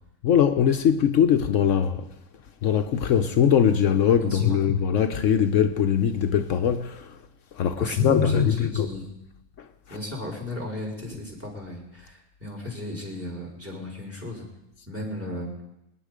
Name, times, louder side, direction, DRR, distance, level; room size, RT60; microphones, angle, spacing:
voice 1, 0.2-2.1 2.6-7.2 7.5-8.9 9.9-10.0, left 8 dB, 75° left, 1.1 m, -21 dB
voice 2, 4.2-4.6 7.8-9.0 9.9-14.5 14.9-15.5, left 1 dB, 10° right, 4.4 m, -35 dB
26.0 x 9.6 x 5.0 m
omnidirectional pair, 1.4 m